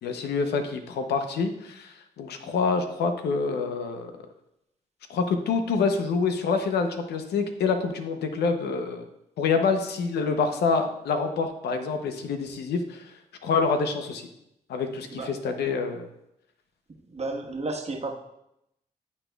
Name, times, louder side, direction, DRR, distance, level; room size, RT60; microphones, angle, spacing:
voice 1, 0.0-4.1 5.1-9.1 9.4-13.1 13.4-14.3 14.7-16.1, left 4 dB, 80° left, 7 dB, 0.7 m, -27 dB
voice 2, 16.9-18.2, right 2 dB, 40° right, 2 dB, 1.3 m, -33 dB
10.5 x 4.1 x 2.3 m, 0.81 s
supercardioid pair, 40°, 17 cm